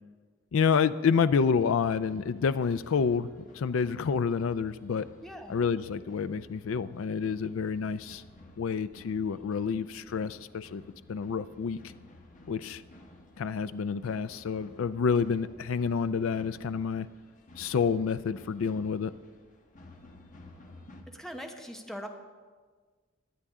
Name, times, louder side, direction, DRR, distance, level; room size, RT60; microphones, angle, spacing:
voice 1, 0.5-3.3 3.5-5.1 5.5-8.2 8.6-10.8 11.1-11.8 12.5-12.8 13.4-17.1 17.6-19.1, left 6 dB, 70° left, 14 dB, 0.4 m, -28 dB
sound 1, 1.5-21.0, left 2 dB, 40° left, 1.3 m, -54 dB
voice 2, 5.2-5.5 21.1-22.1, equal, ahead, 3 dB, 0.9 m, -41 dB
18.5 x 11.5 x 3.7 m, 1.5 s
head